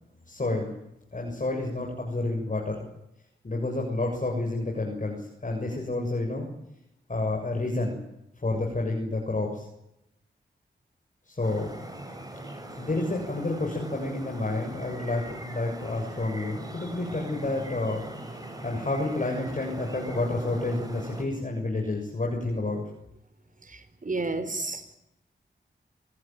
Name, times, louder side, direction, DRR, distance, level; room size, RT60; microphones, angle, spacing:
voice 1, 0.3-0.7 1.1-2.9 3.4-6.5 7.1-8.0 8.4-9.7 11.3-11.7 12.8-18.0 18.6-22.8, left 2 dB, 40° left, 0 dB, 7.1 m, -29 dB
sound 1, 11.4-21.2, right 1 dB, 20° right, 7.4 m, -41 dB
voice 2, 23.6-24.9, right 3 dB, 45° right, 12 dB, 4.6 m, -32 dB
26.0 x 19.0 x 9.2 m, 0.84 s
cardioid pair, 55°, 20 cm